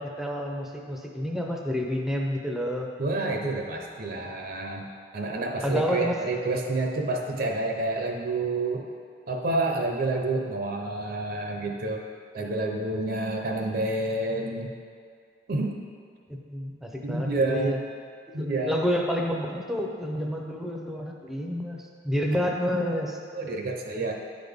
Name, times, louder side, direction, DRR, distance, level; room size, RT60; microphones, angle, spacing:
voice 1, 0.0-2.9 5.6-6.2 16.3-17.8 18.4-23.2, equal, ahead, 0 dB, 0.6 m, -29 dB
voice 2, 3.0-4.8 5.1-8.9 9.3-12.0 12.3-14.7 15.5-15.7 17.0-17.7 18.3-18.8 22.3-22.4 23.3-24.1, right 2 dB, 55° right, 1 dB, 0.7 m, -29 dB
9.9 x 4.0 x 3.5 m, 2.2 s
head